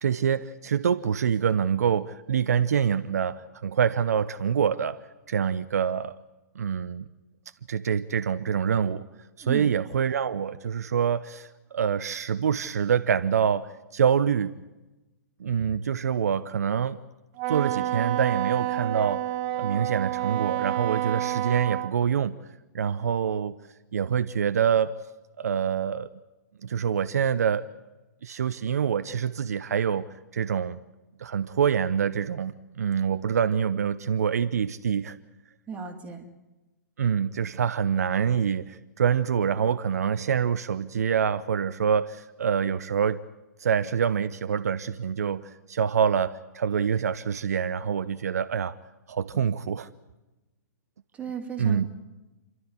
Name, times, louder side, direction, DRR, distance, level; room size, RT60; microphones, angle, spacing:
voice 1, 0.0-5.0 5.3-6.1 6.5-7.1 7.7-9.0 9.4-14.5 15.4-17.0 17.5-19.2 19.5-22.4 22.7-23.6 23.9-24.9 25.4-26.1 26.6-27.7 28.2-30.8 31.2-35.2 37.0-43.2 43.6-48.8 49.1-49.9 51.6-51.9, right 7 dB, 65° right, 12 dB, 0.8 m, -26 dB
Wind instrument woodwind instrument, 17.4-21.9, right 14 dB, 35° right, 0.9 m, -29 dB
voice 2, 35.7-36.3 51.1-51.9, right 7 dB, 15° right, 2 dB, 3.0 m, -35 dB
29.0 x 12.5 x 9.8 m, 1.1 s
figure-of-eight pair, 120°, 9 cm